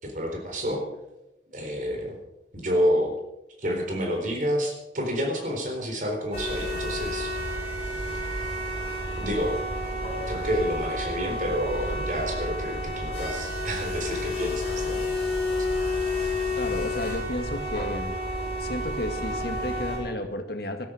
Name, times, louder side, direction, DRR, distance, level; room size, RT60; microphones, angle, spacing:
voice 1, 0.0-0.9 1.5-2.2 2.5-3.2 3.6-7.3 9.1-9.7 10.3-15.2, equal, 45° right, 2 dB, 4.0 m, -29 dB
sound 1, 6.3-20.0, left 1 dB, 35° left, 6.5 m, -30 dB
voice 2, 16.6-18.1 18.6-20.9, left 1 dB, 60° left, 5 dB, 2.0 m, -32 dB
18.5 x 13.0 x 5.1 m, 0.92 s
head